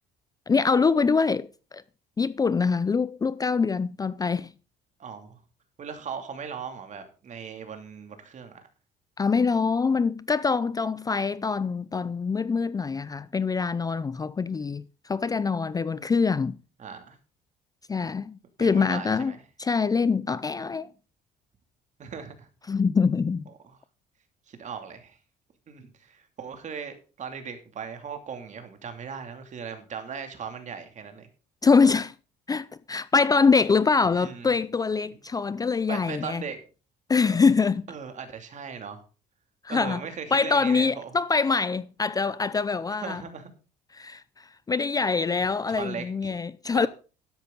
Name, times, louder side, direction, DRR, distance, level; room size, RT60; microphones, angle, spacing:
voice 1, 0.5-1.8 2.2-4.5 9.2-16.5 17.9-19.3 19.6-20.9 22.7-23.4 31.6-32.1 32.5-36.4 37.1-37.9 39.6-40.0 40.3-43.2 44.0-46.9, left 5 dB, 20° left, 0.5 m, -24 dB
voice 2, 5.0-5.4 5.8-8.6 16.8-17.2 18.6-19.4 22.0-22.5 23.5-23.8 24.5-25.2 25.7-31.3 34.1-34.6 35.9-36.6 37.9-39.0 39.7-41.2 42.9-43.5 45.7-46.4 46.7-46.9, right 6 dB, 45° right, 2.8 m, -38 dB
13.0 x 10.5 x 3.9 m
cardioid pair, 110°, 17 cm